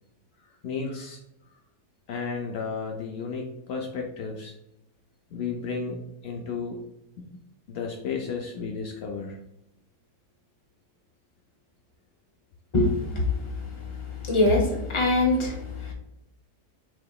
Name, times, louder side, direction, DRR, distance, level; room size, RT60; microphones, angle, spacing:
voice 1, 0.6-1.2 2.1-4.5 5.3-6.8 7.2-7.4 7.7-9.4, left 5 dB, 85° left, 1 dB, 0.5 m, -33 dB
voice 2, 12.7-13.2 14.2-15.6 15.9-16.0, left 2 dB, 25° left, -1 dB, 0.7 m, -22 dB
6.0 x 2.8 x 2.3 m, 0.87 s
omnidirectional pair, 1.7 m